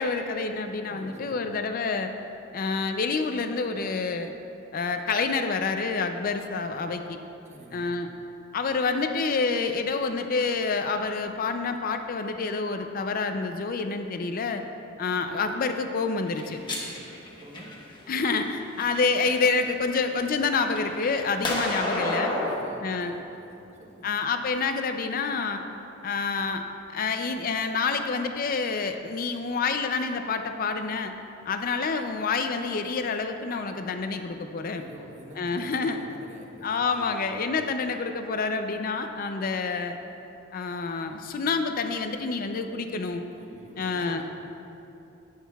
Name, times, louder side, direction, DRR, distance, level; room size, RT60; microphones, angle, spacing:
voice 1, 0.0-2.1 2.5-4.3 4.7-7.2 7.7-8.1 8.5-14.6 15.0-16.6 18.1-22.3 22.8-23.1 24.0-25.6 26.0-26.6 26.9-31.1 31.5-34.8 35.4-36.0 36.6-40.0 40.5-43.2 43.8-44.2, left 4 dB, 45° left, 7 dB, 0.4 m, -28 dB
voice 2, 0.9-1.5 7.4-7.9 16.5-17.0 17.4-17.8 22.1-24.1 34.7-37.4 43.3-44.2, equal, 35° right, -1 dB, 1.1 m, -45 dB
sound 1, 16.3-18.0 18.6-19.5 19.9-22.6, left 1 dB, 25° left, 1.1 m, -31 dB
18.0 x 6.4 x 2.3 m, 2.9 s
head